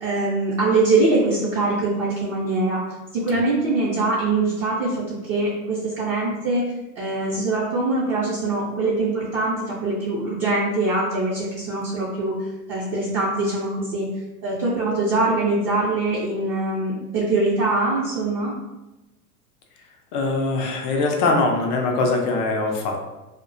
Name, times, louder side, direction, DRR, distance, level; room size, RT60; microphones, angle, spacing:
voice 1, 0.0-2.8 3.1-6.6 7.0-12.4 12.7-14.1 14.4-18.5, right 2 dB, 30° right, -7 dB, 0.5 m, -23 dB
voice 2, 20.1-23.1, left 3 dB, 35° left, 1 dB, 0.4 m, -22 dB
2.3 x 2.1 x 2.5 m, 1.0 s
hypercardioid pair, 95°, 47 cm